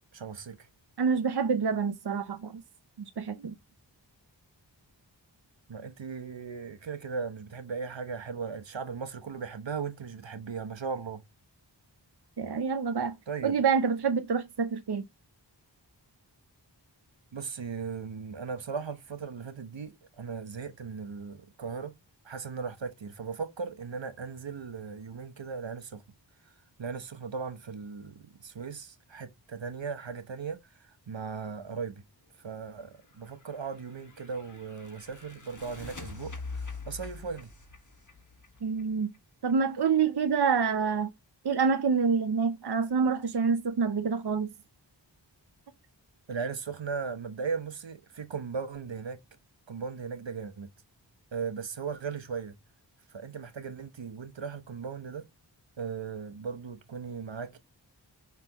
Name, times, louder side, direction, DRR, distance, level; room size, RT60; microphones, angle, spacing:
voice 1, 0.1-0.7 5.7-11.2 13.3-13.5 17.3-21.9 22.2-26.0 26.8-32.0 32.4-37.5 46.3-49.2 49.7-50.7 51.3-52.6 53.1-55.3 55.8-57.6, right 5 dB, 80° right, 1.0 m, -37 dB
voice 2, 1.0-2.6 3.2-3.5 12.4-13.2 13.4-15.0 38.6-39.1 39.4-41.1 41.4-44.5, right 5 dB, 60° right, 0.7 m, -27 dB
sound 1, 33.4-39.2, left 4 dB, 40° left, 1.6 m, -44 dB
5.8 x 5.8 x 2.9 m
wide cardioid pair, 65°, 44 cm